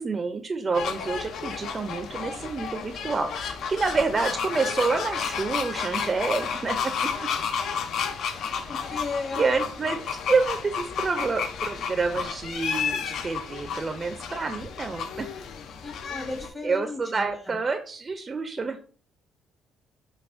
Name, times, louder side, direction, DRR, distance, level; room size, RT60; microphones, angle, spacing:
voice 1, 0.0-7.3 9.4-15.3 16.3-18.9, right 4 dB, 35° right, 7 dB, 0.4 m, -28 dB
sound 1, 0.7-16.5, left 6 dB, 70° left, 0.4 m, -32 dB
voice 2, 8.7-9.5 15.8-17.3, left 3 dB, 35° left, 1 dB, 1.1 m, -34 dB
4.6 x 2.2 x 2.5 m, 0.43 s
supercardioid pair, 65°, 0 cm